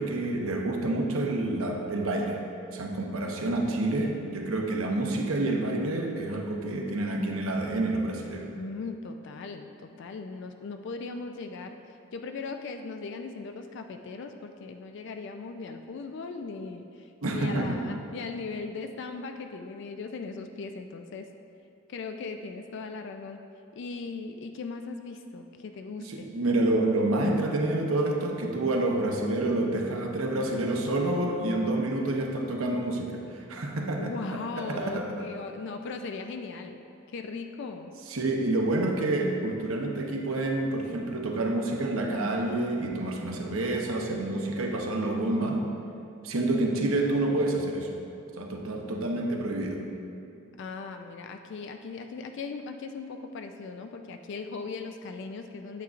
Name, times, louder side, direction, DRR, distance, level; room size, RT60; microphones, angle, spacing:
voice 1, 0.0-2.4 2.7-8.5 17.2-17.8 26.0-33.2 33.5-34.1 34.6-35.3 38.1-45.6 46.2-47.9 48.4-49.8, right 2 dB, 85° right, 1 dB, 0.9 m, -28 dB
voice 2, 8.6-11.8 12.1-21.3 21.9-23.4 23.7-26.3 34.0-36.8 37.1-37.9 49.0-49.4 50.6-55.8, left 4 dB, 60° left, 6 dB, 0.4 m, -38 dB
8.4 x 8.1 x 2.5 m, 2.6 s
head